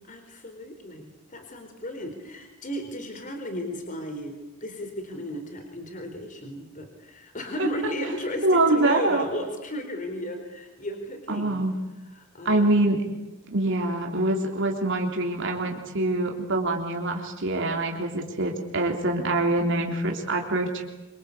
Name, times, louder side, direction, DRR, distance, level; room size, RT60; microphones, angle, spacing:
voice 1, 0.1-11.7 12.0-12.8, equal, 40° left, 5 dB, 4.3 m, -35 dB
voice 2, 8.4-9.2 11.3-11.8 12.5-13.0 13.5-20.8, right 2 dB, 65° right, 2 dB, 3.6 m, -24 dB
27.0 x 25.5 x 8.5 m, 1.1 s
head